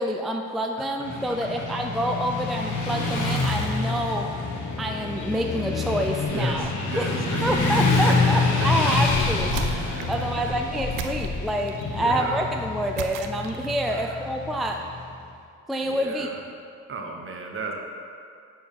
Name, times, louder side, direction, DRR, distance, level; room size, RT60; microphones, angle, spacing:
voice 1, 0.0-4.3 4.8-6.7 7.0-7.1 7.4-14.8 15.7-16.3, equal, ahead, 2 dB, 0.3 m, -27 dB
Motorcycle / Traffic noise roadway noise, 1.0-15.1, left 3 dB, 80° left, 1.2 m, -27 dB
voice 2, 6.2-7.5 8.0-9.2 9.8-10.1 10.4-10.5 11.9-12.4 13.8-14.3 15.8-16.4 16.9-17.7, right 3 dB, 45° right, 1 dB, 1.0 m, -35 dB
sound 1, 6.8-6.9 7.4-11.6, left 2 dB, 35° left, 0.9 m, -36 dB
sound 2, 9.5-10.3 11.0-11.9 13.0-13.9, right 8 dB, 90° right, 0.5 m, -36 dB
6.7 x 4.5 x 5.5 m, 2.4 s
cardioid pair, 90°, 30 cm